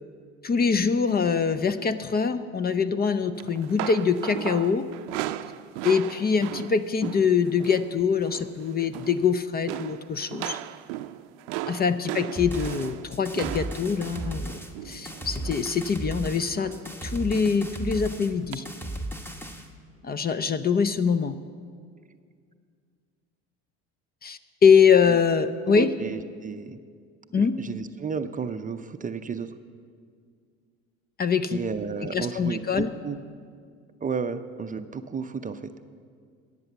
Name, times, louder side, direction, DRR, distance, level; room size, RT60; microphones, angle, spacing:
voice 1, 0.4-4.8 5.8-10.6 11.7-14.5 14.8-16.7 17.0-18.6 20.0-21.3 24.2-25.9 27.3-27.5 31.2-31.6 32.1-32.9, left 6 dB, 30° left, 13 dB, 0.6 m, -23 dB
sound 1, 3.4-7.9 8.2-8.5 8.8-9.3 9.7-15.7 16.6-16.9 17.3-17.5 18.5-18.6, right 14 dB, 85° right, 0.6 m, -36 dB
sound 2, 12.4-19.7, right 1 dB, 5° left, 1.2 m, -35 dB
voice 2, 25.7-26.8 27.3-29.5 31.5-33.2 34.0-35.7, right 5 dB, 25° right, 9 dB, 0.6 m, -32 dB
13.5 x 9.0 x 7.0 m, 2.1 s
supercardioid pair, 85°, 34 cm